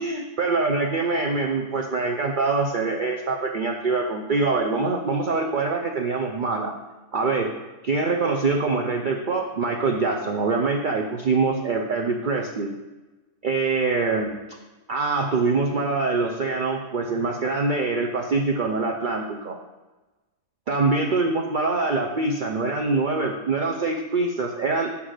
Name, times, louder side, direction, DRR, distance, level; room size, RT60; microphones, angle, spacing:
voice 1, 0.0-6.7 7.1-7.5 7.8-12.7 13.4-14.3 14.9-19.6 20.7-24.9, right 3 dB, 60° right, 1 dB, 0.5 m, -24 dB
5.9 x 5.5 x 6.5 m, 1.2 s
omnidirectional pair, 1.6 m